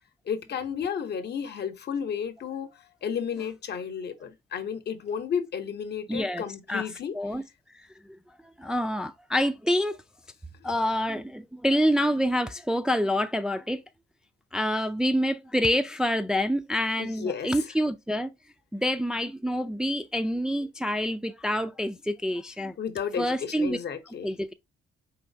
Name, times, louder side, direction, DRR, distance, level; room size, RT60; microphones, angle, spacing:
voice 1, 0.3-2.7 3.0-7.1 17.0-17.5 22.8-24.3, left 7 dB, 55° left, 0.8 m, -32 dB
voice 2, 6.1-7.4 7.7-7.8 8.6-10.0 10.6-13.8 14.5-18.3 18.7-22.8 23.2-23.8 24.2-24.5, equal, 5° right, 0.3 m, -27 dB
4.5 x 3.1 x 2.6 m
cardioid pair, 90°, 20 cm